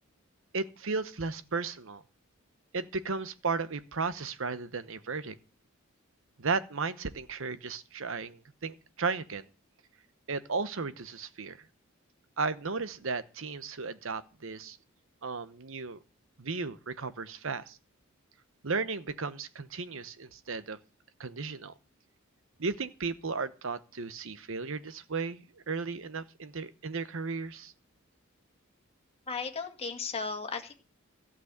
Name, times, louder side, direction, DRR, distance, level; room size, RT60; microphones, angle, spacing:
voice 1, 0.5-2.0 2.7-5.3 6.4-9.4 10.3-11.6 12.4-14.8 15.2-16.0 16.4-17.8 18.6-20.8 21.2-21.7 22.6-27.7, right 4 dB, 70° right, 1.0 m, -35 dB
voice 2, 29.3-30.7, left 4 dB, 30° left, 1.9 m, -35 dB
14.5 x 6.2 x 8.1 m
head